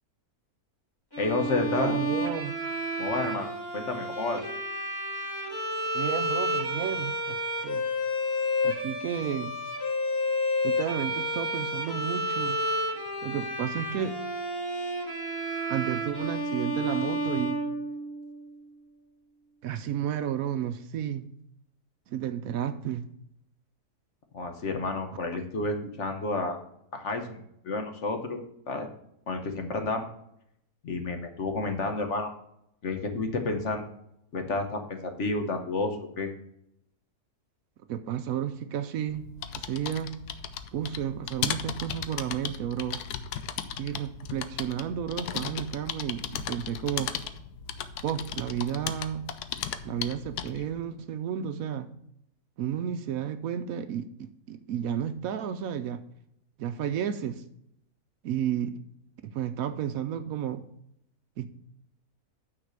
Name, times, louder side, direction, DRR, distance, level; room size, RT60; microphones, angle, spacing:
Bowed string instrument, 1.1-18.3, equal, 15° left, 1.6 m, -31 dB
voice 1, 1.2-2.0 3.0-4.4 24.3-26.6 26.9-28.4 28.7-28.9 29.3-30.1 30.8-32.3 32.8-33.8 34.3-36.3, left 3 dB, 50° left, 5 dB, 1.2 m, -30 dB
voice 2, 1.7-2.5 5.9-7.8 8.6-9.5 10.6-12.6 13.2-14.2 15.7-17.6 19.6-21.3 22.1-23.1 37.9-39.3 39.5-40.2 40.7-43.0 43.8-47.1 48.0-49.3 49.8-51.9 52.6-56.0 56.6-57.4 58.2-58.7 59.2-60.6 61.4-61.5, right 9 dB, 70° right, 10 dB, 1.0 m, -32 dB
sound 1, 39.1-50.7, left 9 dB, 80° left, 1.2 m, -36 dB
9.4 x 4.1 x 6.5 m, 0.75 s
omnidirectional pair, 1.6 m